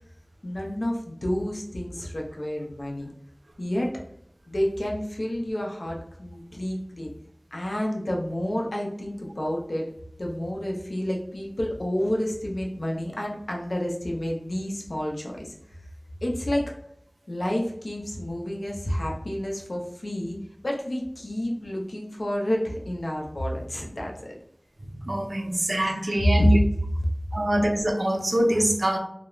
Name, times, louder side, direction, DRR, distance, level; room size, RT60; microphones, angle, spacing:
voice 1, 0.4-3.1 3.6-3.9 4.5-7.1 7.5-9.9 10.2-15.5 16.2-16.7 17.3-20.4 20.6-24.3 25.4-25.5 25.9-26.2, equal, 80° left, -1 dB, 0.5 m, -30 dB
voice 2, 25.0-26.6 27.3-29.0, equal, 70° right, 3 dB, 0.4 m, -24 dB
2.3 x 2.0 x 3.0 m, 0.69 s
wide cardioid pair, 45°, 0 cm